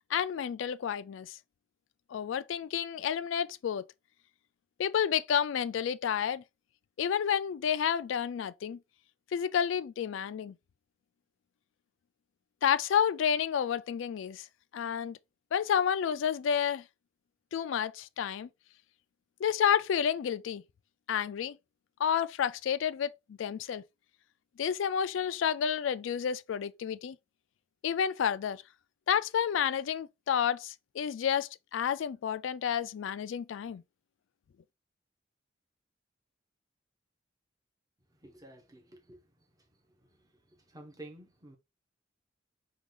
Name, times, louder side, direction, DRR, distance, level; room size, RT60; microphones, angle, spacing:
voice 1, 0.1-1.4 2.1-3.8 4.8-6.4 7.0-8.8 9.3-10.5 12.6-14.5 14.7-15.2 15.5-16.8 17.5-18.5 19.4-20.6 21.1-21.6 22.0-23.8 24.6-27.2 27.8-28.6 29.1-33.8, left 8 dB, 75° left, 0.3 m, -30 dB
voice 2, 38.2-39.2 40.5-41.6, right 1 dB, 20° right, 0.9 m, -50 dB
4.8 x 2.4 x 3.8 m
head